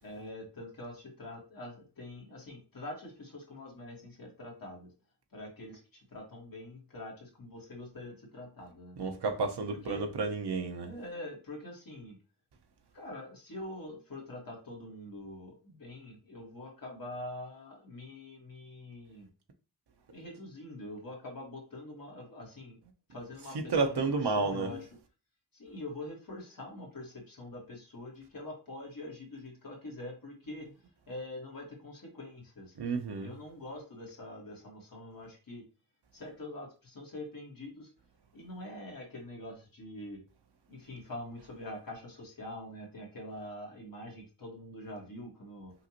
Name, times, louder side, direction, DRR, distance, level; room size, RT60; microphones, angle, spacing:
voice 1, 0.0-4.9 5.3-8.9 9.7-10.1 10.8-12.1 12.9-19.3 20.1-22.8 23.1-24.9 25.5-30.7 31.1-32.7 33.2-35.6 36.1-37.9 38.3-40.2 40.7-45.7, left 1 dB, 55° left, 1.7 m, -44 dB
voice 2, 9.0-10.9 23.7-24.7 32.8-33.3, right 4 dB, 70° right, 0.9 m, -31 dB
5.6 x 2.6 x 2.9 m
wide cardioid pair, 125°, 41 cm